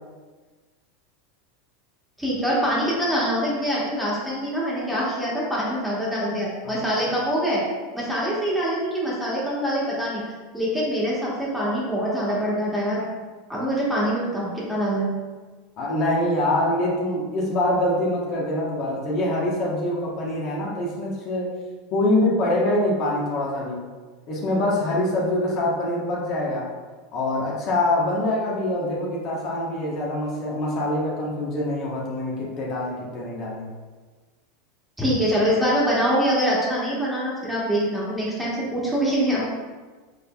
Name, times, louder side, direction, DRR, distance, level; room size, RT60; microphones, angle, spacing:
voice 1, 2.2-7.6 7.9-10.2 10.5-13.1 13.5-15.1 35.0-39.4, equal, ahead, -7 dB, 1.4 m, -24 dB
voice 2, 15.8-21.5 21.9-23.9 24.3-26.7 27.1-33.7, left 1 dB, 50° left, -4 dB, 1.2 m, -24 dB
5.1 x 3.7 x 2.3 m, 1.4 s
hypercardioid pair, 115°, 0 cm